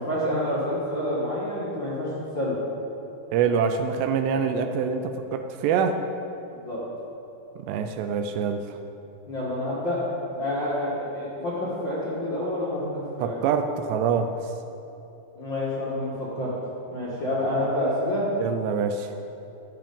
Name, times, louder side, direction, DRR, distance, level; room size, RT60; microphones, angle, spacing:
voice 1, 0.0-2.1 2.3-2.6 6.5-6.8 9.3-10.0 10.3-13.3 15.3-16.5 16.9-18.3, left 1 dB, 60° left, -10 dB, 1.2 m, -28 dB
voice 2, 3.3-6.0 7.6-8.8 13.2-14.4 18.4-19.1, right 6 dB, 85° right, 7 dB, 2.5 m, -25 dB
12.5 x 8.7 x 5.2 m, 2.9 s
omnidirectional pair, 5.4 m